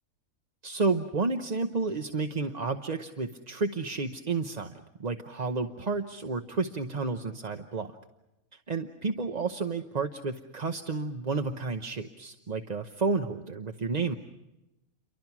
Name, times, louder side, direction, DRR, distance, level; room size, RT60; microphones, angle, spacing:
voice 1, 0.6-8.0 8.7-14.2, right 4 dB, 35° right, 6 dB, 0.9 m, -31 dB
29.5 x 23.5 x 6.0 m, 0.94 s
omnidirectional pair, 1.5 m